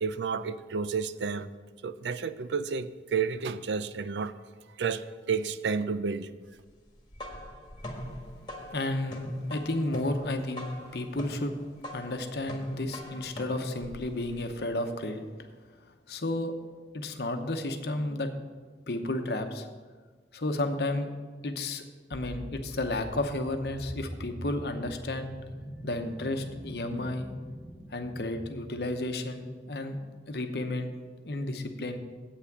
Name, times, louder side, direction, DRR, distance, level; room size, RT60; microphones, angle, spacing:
voice 1, 0.0-1.5 1.8-4.3 4.8-6.3, right 5 dB, 85° right, 13 dB, 0.5 m, -31 dB
sound 1, 6.9-14.6, equal, 25° left, 1.5 m, -42 dB
voice 2, 8.7-11.5 11.9-15.2 16.1-16.5 16.9-18.3 18.9-19.7 20.3-21.1 21.4-21.8 22.1-25.3 25.8-27.3 27.9-30.0 30.3-30.9 31.2-32.0, left 2 dB, 65° left, 7 dB, 0.9 m, -32 dB
sound 2, 22.1-29.0, equal, 10° right, 0.9 m, -44 dB
8.2 x 5.9 x 7.9 m, 1.5 s
head